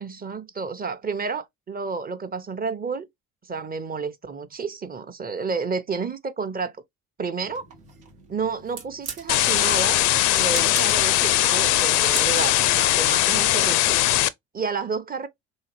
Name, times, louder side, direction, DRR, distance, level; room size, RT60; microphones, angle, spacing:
voice 1, 0.0-3.1 3.4-6.7 7.2-7.7 8.3-10.0 10.3-14.0 14.5-15.3, right 5 dB, 25° right, 0.7 m, -30 dB
sound 1, 7.4-12.7, right 6 dB, 85° right, 1.0 m, -41 dB
sound 2, 9.3-14.3, left 14 dB, 70° left, 0.4 m, -20 dB
3.5 x 2.8 x 3.0 m
hypercardioid pair, 55°, 33 cm